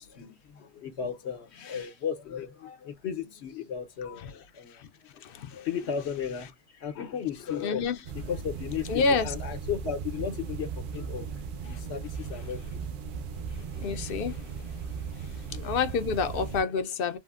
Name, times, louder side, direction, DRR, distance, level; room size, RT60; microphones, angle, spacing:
voice 1, 0.0-13.2 15.1-15.7 17.1-17.2, left 7 dB, 85° left, 1.0 m, -36 dB
voice 2, 5.2-5.6 7.6-8.0 8.9-9.3 13.8-14.5 15.6-17.2, left 5 dB, 65° left, 0.7 m, -28 dB
sound 1, 8.0-16.6, right 6 dB, 60° right, 0.7 m, -37 dB
3.5 x 2.1 x 2.3 m
omnidirectional pair, 1.1 m